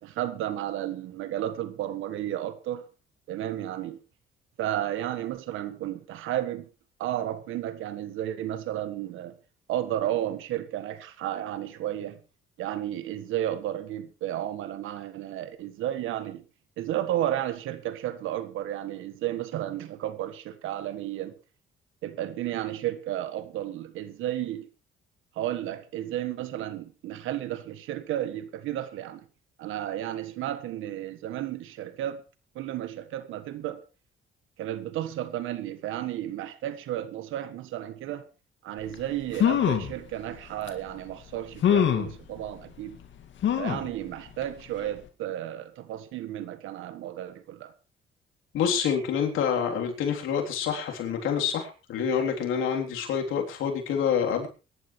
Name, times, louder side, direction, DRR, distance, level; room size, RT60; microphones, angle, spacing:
voice 1, 0.0-2.8 3.3-4.0 4.6-6.7 7.0-9.3 9.7-12.2 12.6-16.4 16.8-21.3 22.0-24.7 25.3-29.3 29.6-32.2 32.5-33.8 34.6-38.2 38.6-43.0 43.6-47.7, right 12 dB, 90° right, 1.6 m, -33 dB
sound 1, 38.9-39.0 39.3-39.9 40.7-40.8 41.6-42.1 43.4-43.9 44.4-44.5 44.8-44.9, left 9 dB, 70° left, 2.2 m, -23 dB
voice 2, 48.5-54.5, left 7 dB, 85° left, 3.6 m, -27 dB
23.0 x 11.5 x 3.3 m
cardioid pair, 90°, 20 cm